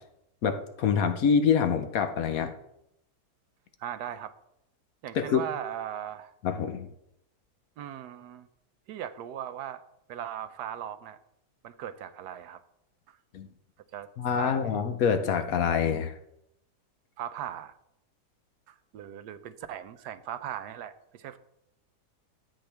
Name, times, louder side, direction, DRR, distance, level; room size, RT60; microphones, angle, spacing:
voice 1, 0.4-2.5 5.1-5.4 6.4-6.9 13.3-13.5 14.2-16.1, left 7 dB, 65° left, 8 dB, 1.1 m, -26 dB
voice 2, 3.8-4.3 5.0-6.3 7.8-8.5 8.9-9.8 10.1-11.2 11.6-12.6 13.1-13.2 13.9-14.1 14.4-14.8 17.2-17.7 18.7-21.4, right 10 dB, 75° right, 11 dB, 1.2 m, -38 dB
12.5 x 7.8 x 3.4 m, 0.81 s
omnidirectional pair, 1.8 m